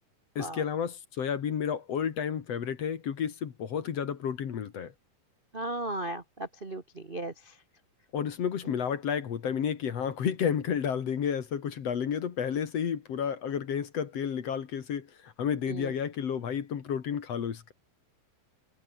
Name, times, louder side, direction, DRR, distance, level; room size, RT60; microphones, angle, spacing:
voice 1, 0.4-4.9 8.1-17.7, left 8 dB, 50° left, 2.6 m, -31 dB
voice 2, 5.5-7.6 15.6-15.9, right 1 dB, 40° right, 0.7 m, -36 dB
omnidirectional pair, 3.9 m